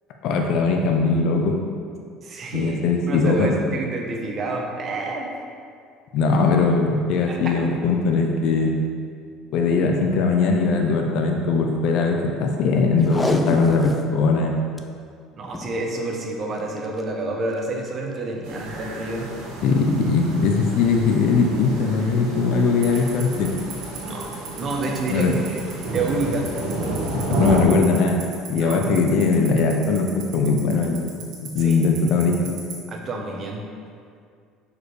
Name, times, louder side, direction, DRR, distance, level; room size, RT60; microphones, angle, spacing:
voice 1, 0.2-1.6 2.5-3.6 6.1-8.8 9.5-14.5 19.6-23.5 25.1-25.3 27.1-28.2 28.5-32.4, left 4 dB, 60° left, 2 dB, 0.6 m, -20 dB
voice 2, 2.2-2.8 3.1-5.3 7.3-7.5 15.4-19.3 24.0-24.3 24.5-25.6 25.9-26.5 28.6-28.9 31.6-31.8 32.9-33.6, right 3 dB, 35° right, 0 dB, 0.9 m, -28 dB
Packing tape duct tape, 13.0-14.1 14.5-14.6 14.8-14.9 15.4-15.8 16.8-17.0 17.6-17.7, left 2 dB, 15° left, 0.4 m, -27 dB
sound 1, 18.4-27.6, right 2 dB, 80° right, 1.2 m, -31 dB
Tick-tock, 22.8-32.7, right 13 dB, 60° right, 1.2 m, -35 dB
6.5 x 4.8 x 3.2 m, 2.2 s
cardioid pair, 130°, 0 cm